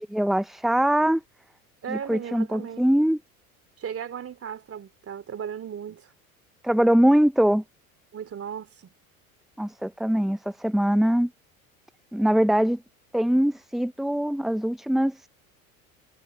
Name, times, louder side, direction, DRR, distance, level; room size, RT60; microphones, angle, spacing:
voice 1, 0.1-1.2 1.9-3.2 6.6-7.6 9.6-11.3 12.1-12.8 13.1-15.3, equal, ahead, 0.7 m, -22 dB
voice 2, 1.8-2.8 3.8-6.1 8.1-8.9, right 8 dB, 30° right, 3.3 m, -36 dB
hypercardioid pair, 75°, 43 cm